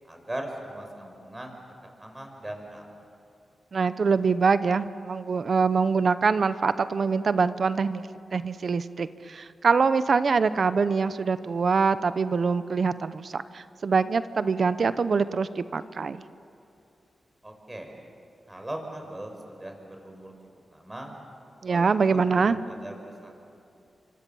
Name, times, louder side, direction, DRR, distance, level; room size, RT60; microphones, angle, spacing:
voice 1, 0.1-1.6 2.0-2.8 17.4-17.9 18.5-20.3 20.7-21.1 21.7-22.9 23.2-23.4, right 1 dB, 20° right, 3 dB, 5.6 m, -39 dB
voice 2, 3.7-8.0 8.3-16.2 21.6-22.6, right 5 dB, 60° right, 13 dB, 0.8 m, -24 dB
28.5 x 25.0 x 7.1 m, 2.6 s
cardioid pair, 65°, 0 cm